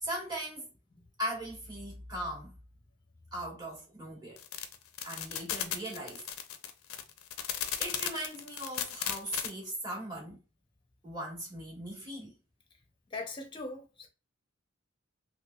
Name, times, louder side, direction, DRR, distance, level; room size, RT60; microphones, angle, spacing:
voice 1, 0.0-0.7 1.2-2.6 3.3-4.4 5.0-6.3 7.8-10.4 11.0-12.3, right 1 dB, 20° right, 1.4 m, -39 dB
sound 1, 4.4-9.5, left 9 dB, 80° left, 0.5 m, -35 dB
voice 2, 13.1-14.1, left 2 dB, 20° left, 0.6 m, -40 dB
3.2 x 3.0 x 2.3 m
head